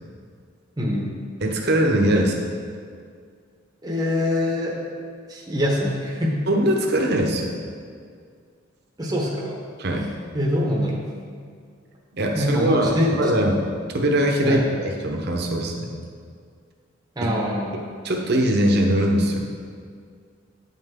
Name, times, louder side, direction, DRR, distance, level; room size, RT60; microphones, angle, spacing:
voice 1, 0.8-1.2 3.8-4.8 5.3-6.4 9.0-9.6 10.3-11.1 12.3-13.3 14.4-14.6 17.2-17.8, left 1 dB, 20° right, -3 dB, 0.9 m, -24 dB
voice 2, 1.4-2.3 6.5-7.5 9.8-10.1 12.1-13.7 13.9-15.9 17.2-17.3 18.0-19.4, right 1 dB, 55° right, 1 dB, 0.9 m, -21 dB
8.7 x 5.6 x 3.7 m, 2.1 s
head